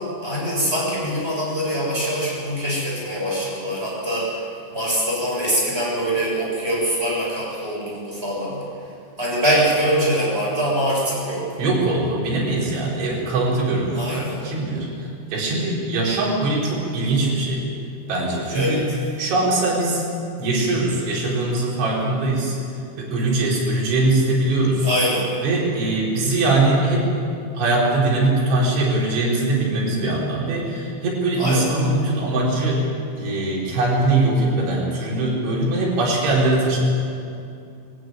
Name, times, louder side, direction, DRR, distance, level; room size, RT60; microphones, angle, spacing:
voice 1, 0.0-8.6 9.2-11.6 13.9-14.4 18.5-18.8 24.8-25.3 31.4-31.7, equal, 10° right, -5 dB, 7.3 m, -23 dB
voice 2, 11.6-17.7 18.1-18.8 19.2-20.0 20.4-22.5 23.0-24.9 25.4-27.1 27.5-32.8 33.2-36.8, right 2 dB, 75° right, -4 dB, 6.8 m, -21 dB
20.0 x 16.5 x 9.3 m, 2.5 s
omnidirectional pair, 5.5 m